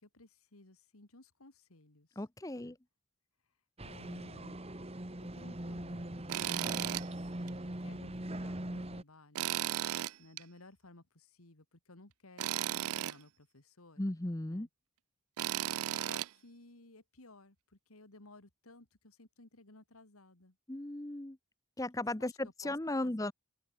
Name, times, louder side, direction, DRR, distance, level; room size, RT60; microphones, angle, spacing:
voice 1, 0.0-2.2 2.6-2.8 3.8-4.6 5.2-9.5 10.2-14.0 14.5-14.7 15.9-20.6 22.2-22.8 23.0-23.3, left 2 dB, 85° left, 2.7 m, -58 dB
voice 2, 2.2-2.8 14.0-14.7 20.7-21.4 21.8-23.3, left 1 dB, 15° left, 0.7 m, -36 dB
sound 1, 3.8-9.0, right 1 dB, 30° right, 1.6 m, -41 dB
Tools, 6.3-7.1 7.5-7.6 9.4-10.4 12.4-13.2 15.4-16.3, right 13 dB, 85° right, 0.4 m, -35 dB
open air
head